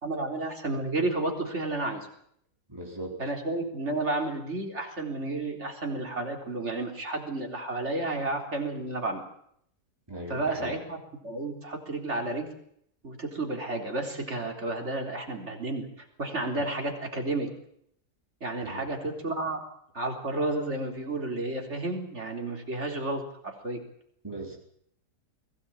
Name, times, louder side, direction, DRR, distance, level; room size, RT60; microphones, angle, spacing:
voice 1, 0.0-2.1 3.2-9.2 10.3-12.5 13.0-15.9 16.2-17.5 18.4-19.6 19.9-23.8, right 2 dB, 45° right, 2 dB, 4.1 m, -31 dB
voice 2, 2.7-3.2 10.1-10.8 18.6-18.9 24.2-24.6, right 1 dB, 15° right, 0 dB, 4.4 m, -39 dB
22.0 x 17.5 x 8.8 m, 0.69 s
omnidirectional pair, 1.7 m